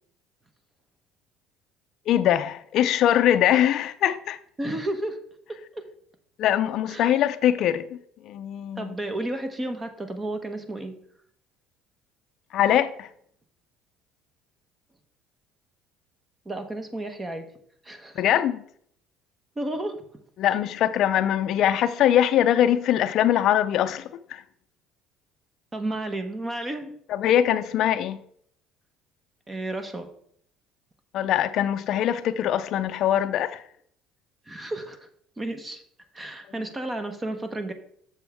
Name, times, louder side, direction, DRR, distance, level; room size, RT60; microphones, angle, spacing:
voice 1, 2.1-4.4 6.4-7.9 8.3-8.9 12.5-13.1 18.2-18.6 20.4-24.4 27.1-28.2 31.1-33.6, left 11 dB, 60° left, 0.4 m, -22 dB
voice 2, 4.6-5.2 5.7-5.8 6.9-7.1 8.8-11.0 16.4-17.5 17.8-18.2 19.6-20.0 25.7-26.9 29.5-30.1 34.5-35.1 35.4-35.8 36.1-37.7, right 1 dB, 20° right, 1.0 m, -32 dB
6.9 x 6.9 x 3.5 m
supercardioid pair, 90°, 0 cm